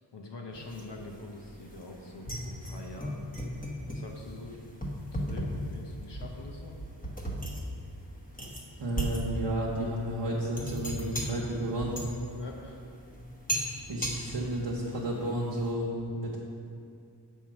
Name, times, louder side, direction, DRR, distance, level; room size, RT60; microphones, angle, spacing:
voice 1, 0.1-3.2 3.9-4.6 5.1-6.7 12.3-12.9, left 2 dB, 70° left, 0 dB, 0.9 m, -44 dB
sound 1, 0.5-15.7, equal, 20° left, 1.0 m, -37 dB
voice 2, 8.8-12.0 13.9-16.4, right 1 dB, 75° right, -5 dB, 1.0 m, -32 dB
7.2 x 4.6 x 5.9 m, 2.4 s
wide cardioid pair, 80°, 43 cm